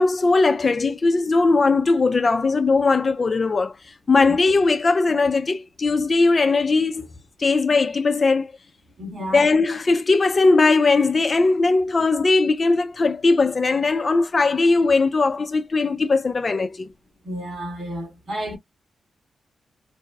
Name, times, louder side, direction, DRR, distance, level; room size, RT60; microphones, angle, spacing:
voice 1, 0.0-7.1 7.4-8.5 9.3-16.9, left 3 dB, 30° left, 0.3 m, -19 dB
voice 2, 9.0-9.5 17.2-18.6, equal, 45° right, 2.0 m, -31 dB
4.6 x 2.2 x 2.3 m
wide cardioid pair, 160°, 0 cm